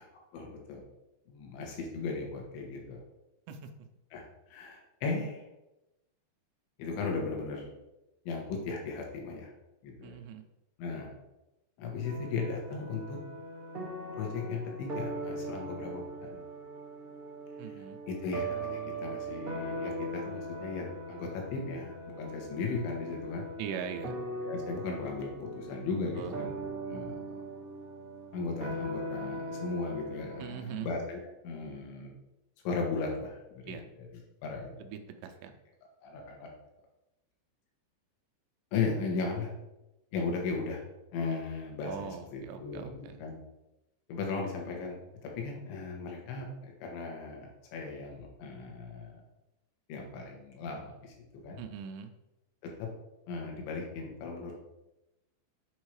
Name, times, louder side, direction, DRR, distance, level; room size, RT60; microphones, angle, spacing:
voice 1, 0.3-0.8 1.3-3.0 4.1-4.2 4.5-5.5 6.8-7.7 8.3-9.5 9.8-10.2 10.8-11.2 11.8-13.2 14.2-16.4 17.7-23.5 24.0-24.1 24.4-26.6 26.9-27.5 28.3-32.1 32.7-34.9 36.0-36.5 38.7-39.5 40.1-40.8 41.1-43.4 44.1-49.2 49.9-51.6 52.6-52.9 53.3-54.5, left 4 dB, 85° left, 1 dB, 3.8 m, -37 dB
voice 2, 10.0-10.4 17.6-18.0 23.6-24.2 26.2-26.4 30.4-30.9 33.7-33.9 34.8-35.5 41.8-43.2 51.6-52.1, right 8 dB, 80° right, 6 dB, 2.8 m, -41 dB
sound 1, 12.0-30.5, right 1 dB, 25° right, 1.1 m, -40 dB
8.0 x 4.6 x 4.8 m, 0.94 s
omnidirectional pair, 5.1 m